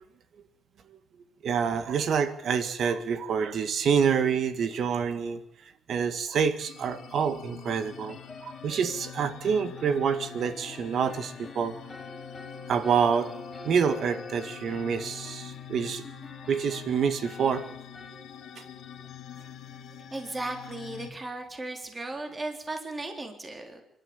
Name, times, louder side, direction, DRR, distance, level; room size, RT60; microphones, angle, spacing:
voice 1, 1.4-5.4 5.9-11.7 12.7-13.3 13.6-16.0 16.5-17.6, right 6 dB, 65° right, 10 dB, 2.0 m, -27 dB
sound 1, 4.6-4.8 5.1-5.2 8.1-19.5, left 2 dB, 25° left, 4.1 m, -47 dB
sound 2, 6.6-21.1, left 9 dB, 75° left, 1.6 m, -45 dB
voice 2, 20.1-23.8, right 2 dB, 25° right, 4 dB, 3.9 m, -36 dB
26.0 x 12.5 x 9.0 m, 0.75 s
cardioid pair, 90°, 0 cm